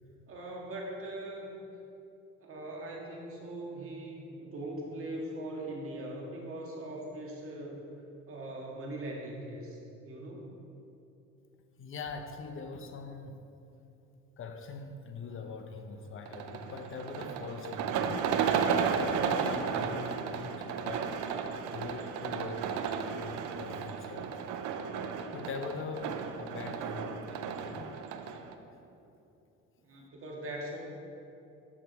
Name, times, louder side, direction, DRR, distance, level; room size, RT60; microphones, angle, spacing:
voice 1, 0.3-1.5 2.4-7.8 8.3-10.5 29.8-30.8, right 1 dB, 45° right, -1 dB, 1.7 m, -41 dB
voice 2, 11.8-13.4 14.4-18.3 18.7-21.2 21.7-24.3 25.3-27.9, left 4 dB, 45° left, 7 dB, 0.7 m, -42 dB
sound 1, 16.3-28.6, right 6 dB, 75° right, 0.6 m, -33 dB
13.5 x 4.7 x 3.1 m, 2.8 s
supercardioid pair, 90°, 30 cm